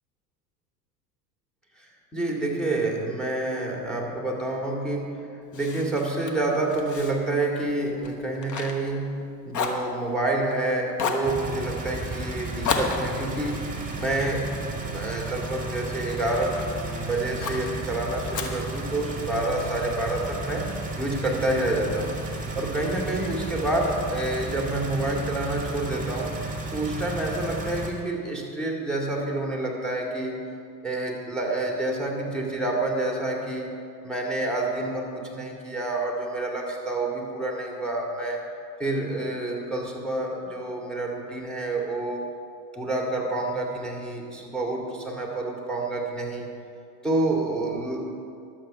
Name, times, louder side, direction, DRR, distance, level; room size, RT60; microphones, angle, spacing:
voice 1, 1.8-5.1 5.5-9.2 9.4-13.6 14.0-14.5 14.9-20.7 21.0-22.1 22.5-26.3 26.7-30.4 30.8-33.7 34.0-38.4 38.8-42.2 42.7-46.5 47.0-48.1, right 2 dB, ahead, -1 dB, 2.4 m, -28 dB
Fire, 5.5-9.2 9.5-10.5 10.9-11.3 12.6-15.1 15.6-16.7 17.4-17.7 18.3-19.4, left 5 dB, 35° left, 1.3 m, -33 dB
sound 1, 11.2-27.9, right 2 dB, 15° right, 2.1 m, -33 dB
12.0 x 7.7 x 5.5 m, 2.4 s
hypercardioid pair, 90°, 49 cm